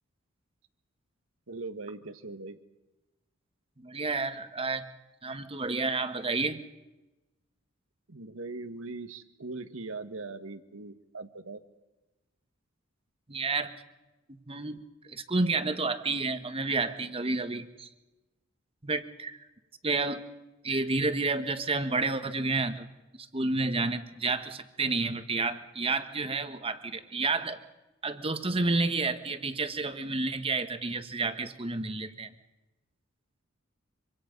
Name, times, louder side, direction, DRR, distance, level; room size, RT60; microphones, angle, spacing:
voice 1, 1.5-2.6 8.1-11.6, right 3 dB, 80° right, 10 dB, 1.6 m, -40 dB
voice 2, 3.8-4.8 5.2-6.6 13.3-13.7 14.3-17.9 18.8-19.4 19.8-20.2 20.6-22.9 23.3-27.6 28.0-32.3, right 3 dB, 30° right, 9 dB, 1.4 m, -30 dB
25.5 x 25.0 x 5.4 m, 1.1 s
head